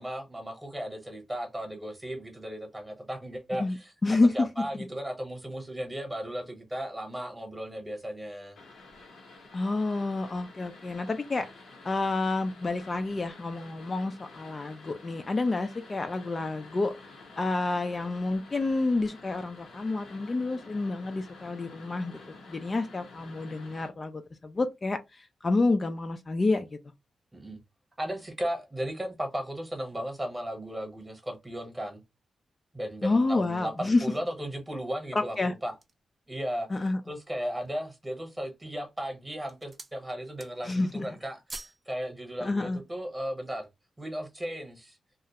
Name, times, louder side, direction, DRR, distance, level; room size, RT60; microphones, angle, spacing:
voice 1, 0.0-8.6 27.3-27.6 28.0-32.0 32.7-35.7 36.3-36.7 37.1-43.7 44.0-45.0, equal, 15° right, 1.0 m, -36 dB
voice 2, 4.0-4.5 4.7-4.8 9.5-11.5 11.8-16.9 17.4-26.8 33.0-34.1 35.1-35.5 36.7-37.0 40.6-41.1 42.4-42.8, left 3 dB, 35° left, 0.4 m, -29 dB
sound 1, 8.5-23.9, left 3 dB, 90° left, 1.0 m, -50 dB
sound 2, 35.1-36.1 36.7-36.8 37.3-37.8 38.5-38.9 39.2-40.0 40.3-40.8 41.1-41.9 42.2-42.3, right 3 dB, 35° right, 0.5 m, -46 dB
2.4 x 2.0 x 2.8 m
cardioid pair, 85°, 0 cm